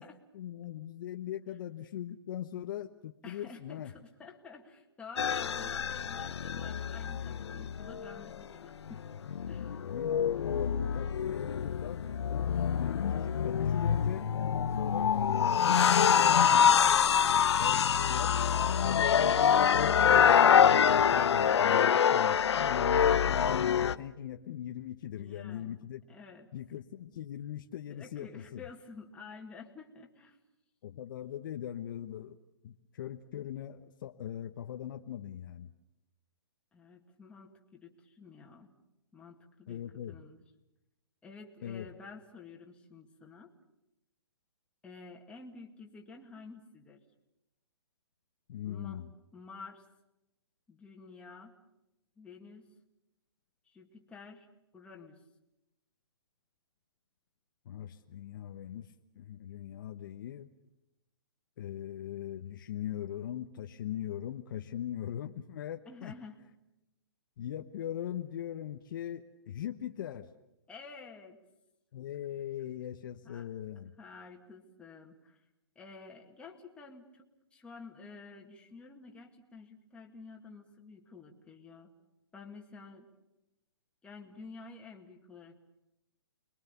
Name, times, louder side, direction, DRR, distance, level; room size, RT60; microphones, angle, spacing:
voice 1, 0.3-3.9 9.8-12.0 12.3-15.1 15.5-17.0 17.3-18.4 18.8-26.0 26.5-28.6 30.8-32.4 32.6-35.7 39.7-40.2 41.6-41.9 48.5-49.1 57.6-58.9 59.1-60.5 61.6-66.1 67.4-70.3 71.9-73.9, left 11 dB, 50° left, 6 dB, 1.1 m, -40 dB
voice 2, 3.2-9.1 9.5-9.8 25.1-25.8 26.1-26.5 27.9-30.4 36.7-38.7 39.1-40.4 41.2-43.5 44.8-47.0 48.6-49.0 49.3-49.8 50.7-51.5 52.2-52.7 53.7-54.5 54.7-55.2 65.9-66.4 70.7-71.4 73.2-73.5 74.0-75.4 75.8-81.9 82.3-83.1 84.0-85.6, left 4 dB, 10° left, 1 dB, 2.2 m, -50 dB
sound 1, 5.2-8.4 8.9-23.9, left 8 dB, 70° left, 0.9 m, -26 dB
29.5 x 22.0 x 6.9 m, 0.92 s
hypercardioid pair, 150°, 14 cm